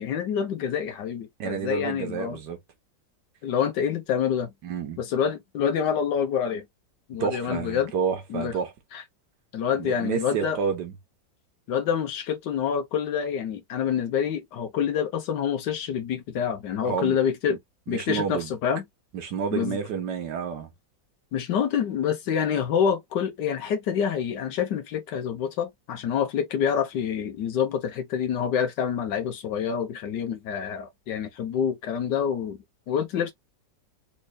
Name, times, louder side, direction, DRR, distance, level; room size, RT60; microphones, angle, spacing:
voice 1, 0.0-2.4 3.4-4.5 5.0-6.6 7.1-7.9 8.3-8.6 8.9-9.0 9.5-10.6 11.7-17.6 17.9-18.8 19.5-19.8 21.3-32.6 32.9-33.3, left 8 dB, 70° left, 1.5 m, -27 dB
voice 2, 1.4-2.6 4.6-5.0 7.2-8.7 9.8-10.9 16.8-17.2 17.5-17.6 17.9-18.5 19.1-20.7, right 7 dB, 70° right, 1.6 m, -30 dB
4.4 x 2.9 x 2.3 m
omnidirectional pair, 1.9 m